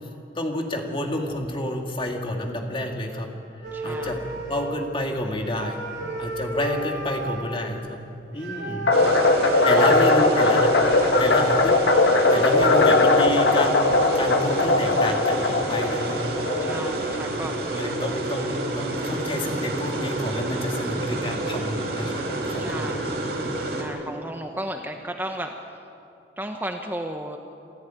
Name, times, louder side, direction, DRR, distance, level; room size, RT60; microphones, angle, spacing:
voice 1, 0.4-3.3 3.8-4.2 4.5-5.8 6.2-8.0 8.3-8.9 9.6-11.8 12.3-13.7 14.1-16.2 17.1-17.4 17.7-22.9 23.2-23.4, left 1 dB, 30° left, 2 dB, 2.4 m, -29 dB
sound 1, 3.6-4.9 5.4-7.5 8.4-10.8 11.5-11.6 11.8-12.5, right 2 dB, 80° right, 7.0 m, -32 dB
voice 2, 3.7-4.3 6.0-6.2 8.6-9.3 9.7-10.2 16.6-17.5 21.0-21.2 22.6-23.2 23.8-25.5 26.4-27.4, right 1 dB, 10° right, 4 dB, 0.9 m, -34 dB
sound 2, 8.9-17.2, left 2 dB, 85° left, 1.6 m, -20 dB
sound 3, 8.9-23.8, right 2 dB, 60° right, 3.8 m, -29 dB
27.0 x 14.0 x 9.2 m, 2.7 s
head